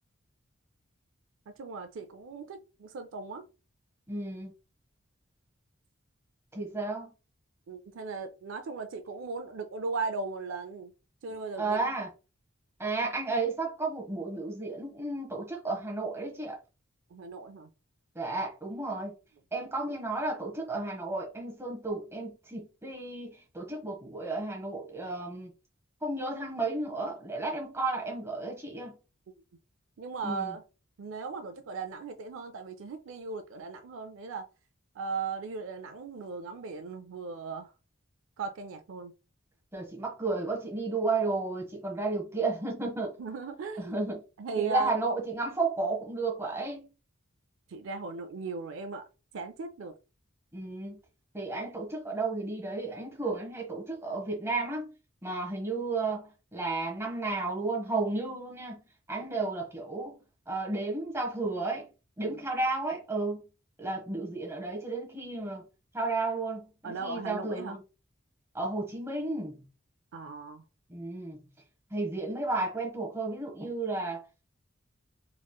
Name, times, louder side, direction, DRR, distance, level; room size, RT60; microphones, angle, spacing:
voice 1, 1.6-3.4 7.7-10.9 11.2-11.8 17.1-17.7 30.0-30.6 31.0-34.5 35.0-37.7 38.4-39.1 43.2-44.0 44.4-45.0 47.7-49.1 49.3-49.9 62.2-62.4 66.8-67.8 70.1-70.6, right 4 dB, 65° right, 0.4 m, -37 dB
voice 2, 4.1-4.5 6.5-7.1 11.6-12.1 12.8-16.6 18.1-19.1 19.5-25.5 26.0-29.0 30.2-30.6 39.7-43.2 43.8-44.2 44.6-46.9 50.5-51.0 51.3-54.9 55.2-58.8 59.1-60.2 60.5-61.9 62.2-63.4 63.8-65.6 65.9-67.8 68.5-69.7 70.9-71.4 71.9-74.2, right 3 dB, 15° right, 1.1 m, -33 dB
4.1 x 3.0 x 2.2 m
head